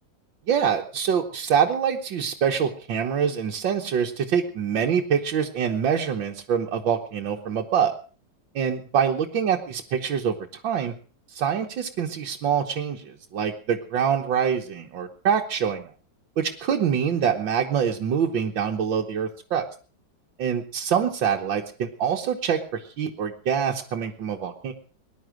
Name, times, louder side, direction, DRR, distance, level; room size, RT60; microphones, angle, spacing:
voice 1, 0.5-7.9 8.6-10.4 10.6-10.9 11.4-15.9 16.4-19.7 20.4-24.7, right 7 dB, 85° right, 1 dB, 2.0 m, -25 dB
19.5 x 11.0 x 6.2 m, 0.40 s
omnidirectional pair, 2.0 m